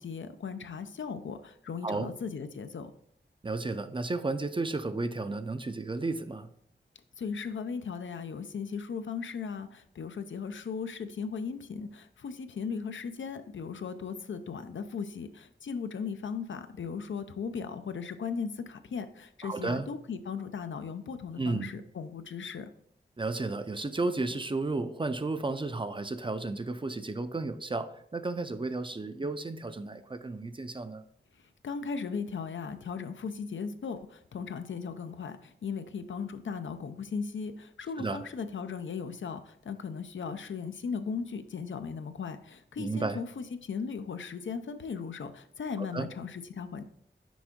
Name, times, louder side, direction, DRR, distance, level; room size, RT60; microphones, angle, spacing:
voice 1, 0.0-2.9 7.2-22.7 31.6-46.8, left 5 dB, 85° left, 9 dB, 0.5 m, -37 dB
voice 2, 3.4-6.5 19.4-19.9 21.4-21.7 23.2-31.0 38.0-38.2 42.8-43.2 45.8-46.1, right 3 dB, 25° right, 11 dB, 0.4 m, -33 dB
6.1 x 4.5 x 3.6 m, 0.69 s
wide cardioid pair, 75°, 19 cm